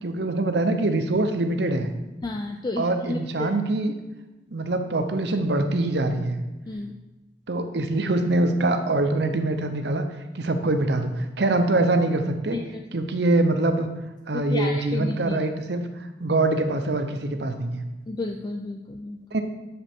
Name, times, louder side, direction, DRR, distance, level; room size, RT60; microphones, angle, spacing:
voice 1, 0.0-1.9 2.8-3.9 4.5-6.4 7.5-10.1 10.3-12.6 12.9-13.9 14.3-17.8 19.3-19.4, right 2 dB, 60° right, 7 dB, 0.7 m, -24 dB
voice 2, 2.2-3.5 6.7-7.0 12.5-12.8 14.3-15.4 18.1-19.2, left 2 dB, 20° left, 3 dB, 0.3 m, -32 dB
7.2 x 5.1 x 4.4 m, 1.1 s
head